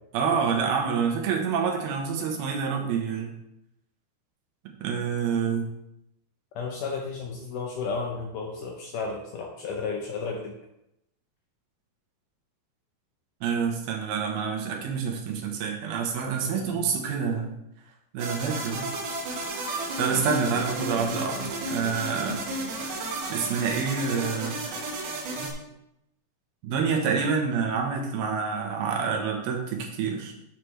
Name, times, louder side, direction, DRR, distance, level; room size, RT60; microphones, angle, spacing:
voice 1, 0.1-3.3 4.8-5.7 13.4-17.5 18.1-18.9 20.0-22.5 23.3-24.8 25.4-25.5 26.6-30.3, right 6 dB, 80° right, 1 dB, 3.0 m, -27 dB
voice 2, 6.6-10.5 16.5-16.9, left 4 dB, 75° left, 1 dB, 1.9 m, -33 dB
sound 1, 18.2-25.5, right 2 dB, 60° right, 2.8 m, -33 dB
9.0 x 6.7 x 3.3 m, 0.83 s
omnidirectional pair, 4.5 m